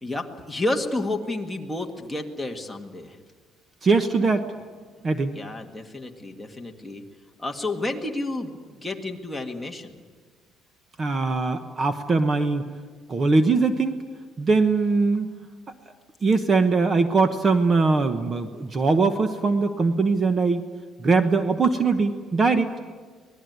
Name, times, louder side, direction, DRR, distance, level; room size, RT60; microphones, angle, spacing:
voice 1, 0.0-3.2 5.3-7.0 7.4-10.0, left 2 dB, 5° left, 2 dB, 1.8 m, -30 dB
voice 2, 3.8-4.5 5.0-5.3 11.0-12.7 13.1-14.0 14.4-15.3 16.2-20.6 21.0-22.7, right 4 dB, 30° right, 9 dB, 1.1 m, -21 dB
25.0 x 19.0 x 9.4 m, 1.5 s
cardioid pair, 150°, 0 cm